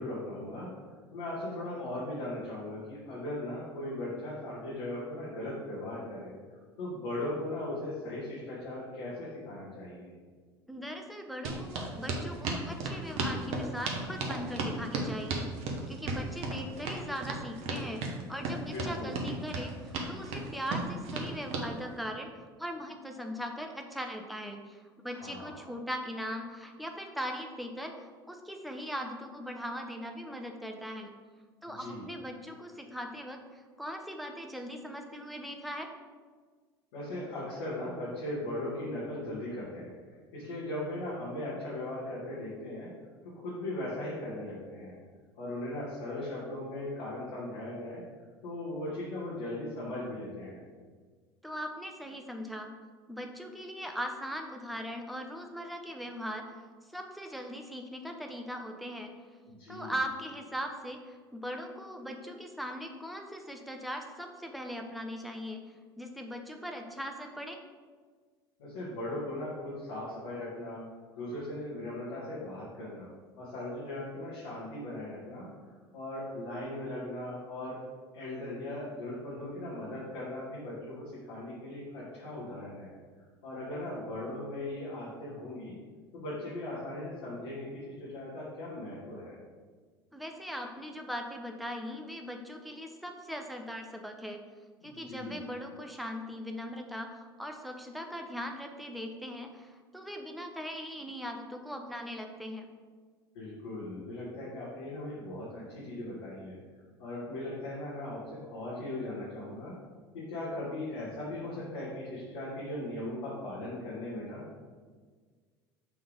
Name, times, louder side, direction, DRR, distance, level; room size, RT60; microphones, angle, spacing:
voice 1, 0.0-10.1 18.6-19.2 25.0-25.7 31.6-32.1 36.9-42.9 43.2-45.0 45.4-48.0 48.4-50.6 59.5-59.9 68.6-70.8 71.2-73.1 73.4-75.5 75.9-77.8 78.1-82.9 83.4-85.8 86.1-89.4 94.8-95.4 103.3-106.6 107.0-109.7 110.1-114.6, left 1 dB, 70° left, -8 dB, 2.0 m, -38 dB
voice 2, 10.7-15.5 15.9-31.1 31.6-35.9 51.4-52.7 53.1-56.7 56.9-59.1 59.7-65.6 66.0-67.6 90.1-94.4 94.8-102.7, equal, ahead, 3 dB, 0.9 m, -40 dB
sound 1, 11.4-21.7, right 3 dB, 50° right, 1.2 m, -34 dB
6.9 x 3.8 x 5.2 m, 1.5 s
hypercardioid pair, 75°, 13 cm